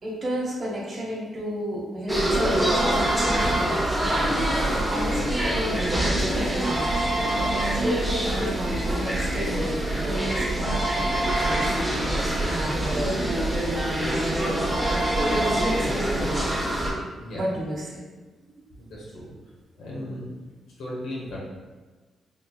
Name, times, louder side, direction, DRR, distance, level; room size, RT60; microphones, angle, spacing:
voice 1, 0.0-4.2 4.4-7.1 7.7-10.8 11.4-11.9 12.4-13.2 13.9-14.4 15.4-16.5 17.3-18.0 18.4-18.5, equal, 40° right, -6 dB, 0.9 m, -32 dB
sound 1, 2.1-16.9, right 1 dB, 5° right, 0.9 m, -25 dB
voice 2, 18.8-19.4 19.8-20.3 20.8-21.4, left 1 dB, 85° left, -5 dB, 0.9 m, -36 dB
5.1 x 2.8 x 2.2 m, 1.3 s
cardioid pair, 105°, 0 cm